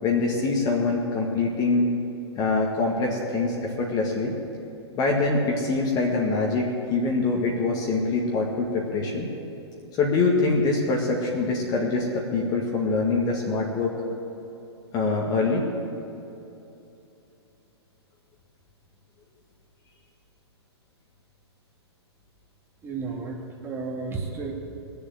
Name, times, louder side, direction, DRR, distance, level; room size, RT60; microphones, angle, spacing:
voice 1, 0.0-1.9 2.4-4.3 5.0-9.3 10.0-14.0 14.9-15.7, left 3 dB, 25° left, -1 dB, 1.8 m, -24 dB
voice 2, 22.8-24.5, right 4 dB, 15° right, -1 dB, 2.2 m, -32 dB
20.5 x 7.1 x 7.8 m, 2.9 s
figure-of-eight pair, 115°, 14 cm